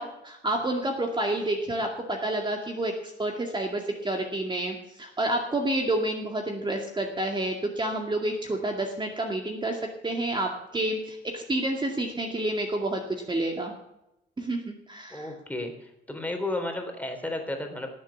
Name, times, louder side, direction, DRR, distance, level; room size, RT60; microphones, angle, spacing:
voice 1, 0.0-13.7 14.4-15.3, right 1 dB, 25° right, 2 dB, 2.2 m, -29 dB
voice 2, 15.1-17.9, left 2 dB, 10° left, 4 dB, 3.5 m, -33 dB
18.5 x 7.9 x 7.2 m, 0.87 s
cardioid pair, 90°, 20 cm